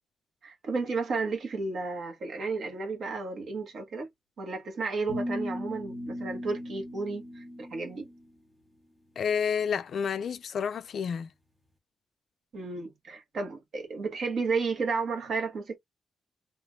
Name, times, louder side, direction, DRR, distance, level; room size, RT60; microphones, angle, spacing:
voice 1, 0.4-4.1 4.4-8.1 12.5-15.8, right 4 dB, 60° right, 1.3 m, -32 dB
sound 1, 5.1-8.2, equal, ahead, 1.2 m, -37 dB
voice 2, 9.2-11.3, left 7 dB, 55° left, 0.4 m, -30 dB
3.3 x 3.0 x 2.2 m
wide cardioid pair, 175°, 0 cm